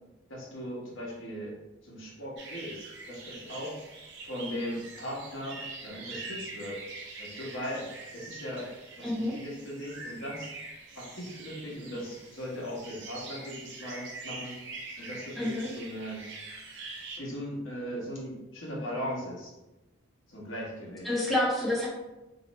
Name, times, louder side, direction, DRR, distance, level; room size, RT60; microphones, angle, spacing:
voice 1, 0.3-1.5 1.8-3.8 4.2-6.8 7.2-7.9 8.1-8.7 9.0-10.5 10.9-14.5 15.0-16.2 17.2-19.5 20.3-21.1, equal, 70° left, -4 dB, 1.0 m, -38 dB
sound 1, 2.4-17.2, right 3 dB, 60° right, 0.6 m, -44 dB
voice 2, 9.0-9.3 15.4-15.7 21.0-21.9, left 1 dB, ahead, -6 dB, 0.5 m, -28 dB
2.8 x 2.0 x 4.0 m, 1.0 s
head